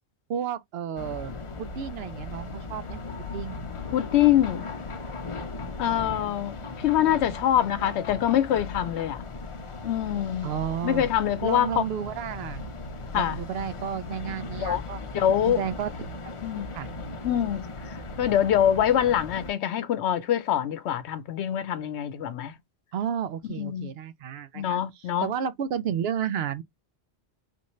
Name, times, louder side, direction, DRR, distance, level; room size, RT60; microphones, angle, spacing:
voice 1, 0.3-1.3 1.6-3.0 3.3-3.6 10.4-11.1 11.4-12.6 13.1-15.0 15.4-15.9 16.7-16.9 22.9-24.8 25.2-26.6, right 8 dB, 70° right, 0.8 m, -31 dB
sound 1, 1.0-19.5, left 3 dB, 40° left, 0.5 m, -37 dB
voice 2, 3.9-4.8 5.8-9.2 9.8-10.5 10.8-11.8 13.1-13.4 14.6-14.8 15.1-15.6 16.4-16.7 17.2-22.5 23.5-23.9 24.5-25.3, left 10 dB, 85° left, 0.9 m, -25 dB
3.7 x 2.6 x 3.0 m
omnidirectional pair, 1.1 m